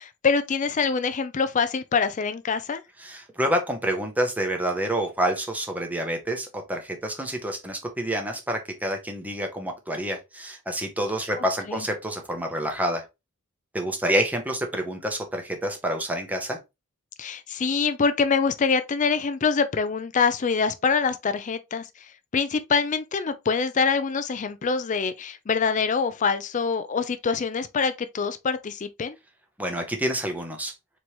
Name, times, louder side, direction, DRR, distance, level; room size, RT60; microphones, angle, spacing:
voice 1, 0.0-2.8 11.7-11.9 17.2-21.9 22.3-29.2, left 5 dB, 35° left, 0.4 m, -25 dB
voice 2, 3.0-13.0 13.7-16.6 29.6-30.7, right 1 dB, 5° right, 0.9 m, -28 dB
4.3 x 3.0 x 3.2 m
head